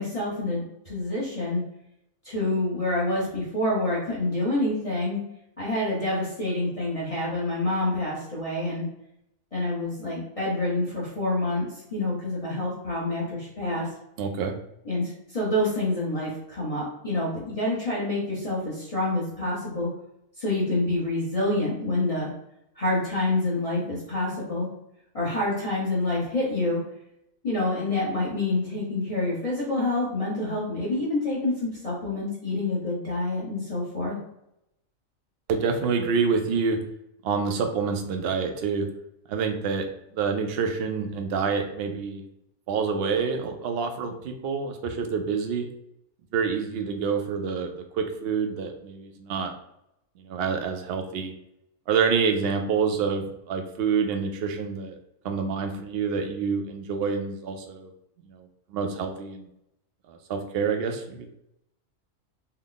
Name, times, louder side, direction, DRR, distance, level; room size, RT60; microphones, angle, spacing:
voice 1, 0.0-1.6 2.2-5.2 5.6-8.9 9.5-13.9 14.8-19.9 20.4-22.3 22.8-24.7 25.1-26.8 27.4-34.2, left 2 dB, 30° left, -6 dB, 0.8 m, -27 dB
voice 2, 14.2-14.5 35.5-36.8 37.2-38.9 39.3-39.9 40.1-42.2 42.7-45.7 46.3-49.5 50.2-51.3 51.9-55.0 55.2-57.9 58.3-58.4 58.7-59.5 60.1-61.3, right 5 dB, 65° right, 5 dB, 0.6 m, -27 dB
3.4 x 2.1 x 3.8 m, 0.80 s
omnidirectional pair, 1.4 m